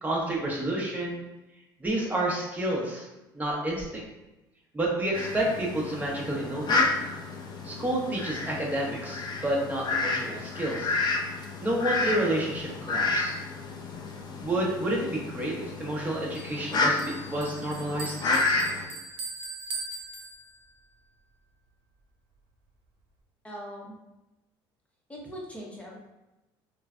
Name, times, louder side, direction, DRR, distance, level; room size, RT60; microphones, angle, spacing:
voice 1, 0.0-1.2 1.8-3.0 3.3-4.0 4.7-6.9 7.6-10.9 11.6-13.3 14.4-18.2, right 1 dB, 15° right, -4 dB, 1.0 m, -29 dB
Fowl, 5.1-18.9, left 3 dB, 40° left, 0.4 m, -30 dB
Bell, 16.3-20.9, right 3 dB, 55° right, 0.6 m, -40 dB
voice 2, 23.4-23.9 25.1-26.0, equal, 10° left, -3 dB, 0.9 m, -40 dB
3.1 x 2.2 x 2.5 m, 1.0 s
supercardioid pair, 75°, 11 cm